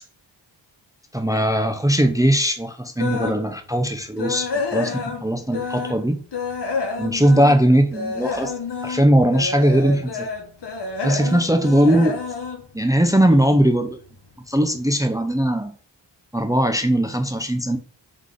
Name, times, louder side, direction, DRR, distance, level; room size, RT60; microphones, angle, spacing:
voice 1, 1.1-6.2 7.0-8.5 8.8-10.3 11.0-12.2 12.7-14.0 14.5-15.7 16.3-17.8, right 1 dB, 5° right, 0.6 m, -19 dB
sound 1, 3.0-3.4 3.8-6.0 6.3-13.5 13.9-14.2 14.6-14.7 15.1-15.2, left 4 dB, 55° left, 1.1 m, -29 dB
3.7 x 3.3 x 3.7 m
cardioid pair, 45°, 49 cm